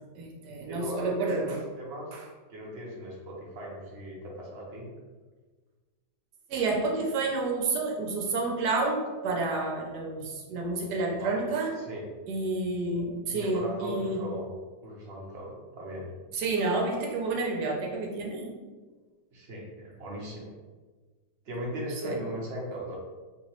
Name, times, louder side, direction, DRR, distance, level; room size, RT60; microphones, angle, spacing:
voice 1, 0.1-1.6 2.1-2.2 6.5-11.7 12.3-14.3 16.3-18.6 22.0-22.2, right 3 dB, 75° right, 0 dB, 1.1 m, -29 dB
voice 2, 0.7-2.1 2.5-4.9 11.2-11.4 11.8-12.0 13.3-14.5 14.8-16.1 19.3-20.5 21.5-23.0, right 1 dB, 50° right, -3 dB, 0.8 m, -38 dB
3.0 x 2.9 x 2.9 m, 1.4 s
omnidirectional pair, 1.8 m